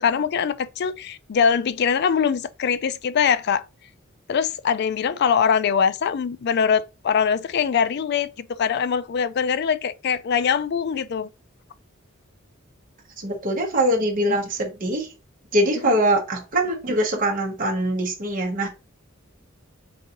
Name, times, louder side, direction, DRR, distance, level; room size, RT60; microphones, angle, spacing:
voice 1, 0.0-3.6 4.3-11.3 15.8-15.9, left 7 dB, 55° left, 0.4 m, -22 dB
voice 2, 13.2-15.1 15.5-18.7, right 1 dB, 40° right, 1.0 m, -23 dB
3.9 x 3.8 x 2.8 m
head